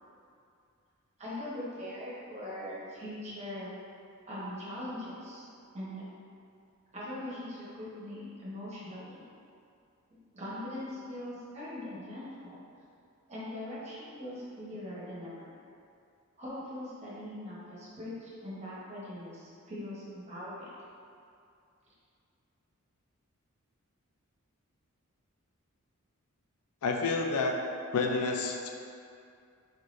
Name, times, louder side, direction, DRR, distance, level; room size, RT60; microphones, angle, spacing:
voice 1, 1.2-3.7 4.3-5.5 5.7-6.0 6.9-9.2 10.1-12.6 13.3-15.5 16.4-20.6, left 1 dB, 30° right, -8 dB, 0.9 m, -41 dB
voice 2, 26.8-27.6 27.9-28.7, left 3 dB, 80° left, 2 dB, 0.4 m, -29 dB
3.9 x 3.3 x 2.5 m, 2.5 s
head